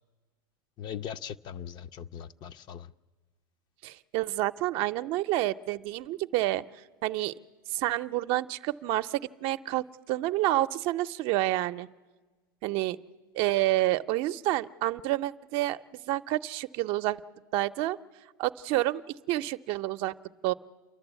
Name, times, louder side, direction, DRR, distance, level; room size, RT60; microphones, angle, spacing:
voice 1, 0.8-2.9, left 9 dB, 40° left, 0.6 m, -40 dB
voice 2, 3.8-6.6 7.0-7.3 7.7-11.9 12.6-13.0 13.3-15.8 16.1-17.2 17.5-18.0 18.4-19.0 19.3-20.1 20.4-20.5, right 16 dB, 50° right, 0.7 m, -28 dB
29.0 x 11.5 x 8.2 m
hypercardioid pair, 110°, 12 cm